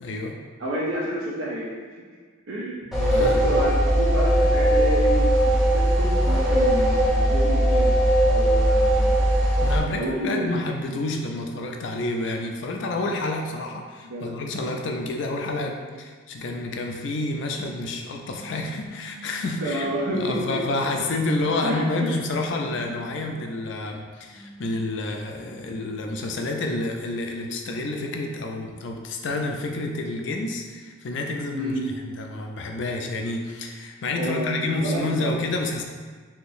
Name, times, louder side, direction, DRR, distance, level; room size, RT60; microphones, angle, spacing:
voice 1, 0.0-0.4 2.9-3.4 9.6-19.9 20.1-35.8, left 2 dB, 60° left, 2 dB, 0.4 m, -29 dB
voice 2, 0.6-1.8 2.5-2.9 3.2-3.7 4.0-8.0 8.2-9.2 9.9-10.5 14.0-14.4 19.6-20.6 21.6-22.1 31.5-31.9 34.1-35.3, right 1 dB, 80° right, -5 dB, 0.6 m, -29 dB
sound 1, 2.9-9.8, right 1 dB, ahead, 0.6 m, -19 dB
sound 2, 18.1-20.2 20.8-23.5 24.1-26.3, right 1 dB, 85° left, 0.9 m, -47 dB
3.5 x 2.7 x 2.6 m, 1.5 s
head